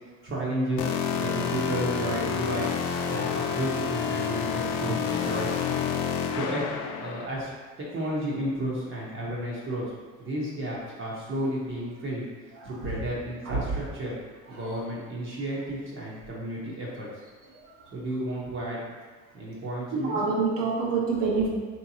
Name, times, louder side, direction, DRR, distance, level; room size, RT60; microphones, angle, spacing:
voice 1, 0.2-0.9 1.1-2.7 3.1-5.8 6.3-6.6 7.0-7.5 7.9-9.9 10.2-12.3 12.6-14.2 14.5-17.1 17.9-18.8 19.3-20.2, right 1 dB, 35° right, -6 dB, 0.9 m, -32 dB
sound 1, 0.8-7.3, left 7 dB, 70° left, 0.5 m, -29 dB
voice 2, 19.9-21.5, right 4 dB, 65° right, -4 dB, 0.9 m, -26 dB
3.6 x 2.8 x 2.7 m, 1.5 s
supercardioid pair, 90°, 34 cm